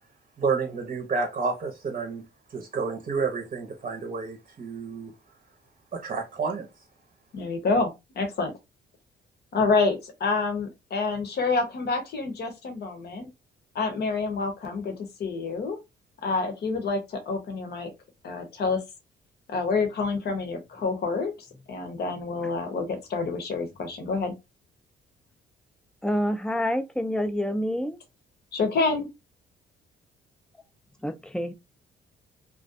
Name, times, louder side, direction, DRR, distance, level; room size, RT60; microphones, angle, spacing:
voice 1, 0.4-2.2 2.5-5.1 5.9-6.7, right 4 dB, 40° right, 0.7 m, -30 dB
voice 2, 7.3-8.6 9.5-13.3 13.7-14.9 15.2-15.8 16.2-17.9 18.2-18.8 19.5-21.3 21.7-24.3 28.5-29.1, left 4 dB, 55° left, 0.8 m, -27 dB
voice 3, 26.0-28.0 31.0-31.5, equal, 5° left, 0.3 m, -27 dB
2.4 x 2.2 x 2.5 m
cardioid pair, 90°, 20 cm